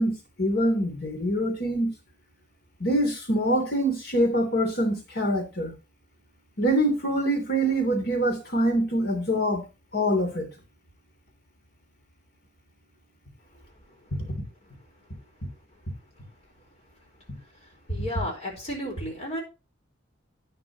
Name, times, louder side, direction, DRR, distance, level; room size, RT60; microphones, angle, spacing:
voice 1, 0.0-1.9 2.8-5.7 6.6-9.6 9.9-10.5, right 1 dB, 50° left, 3.1 m, -25 dB
voice 2, 17.9-19.4, left 1 dB, 35° left, 4.4 m, -33 dB
11.0 x 9.8 x 3.0 m
head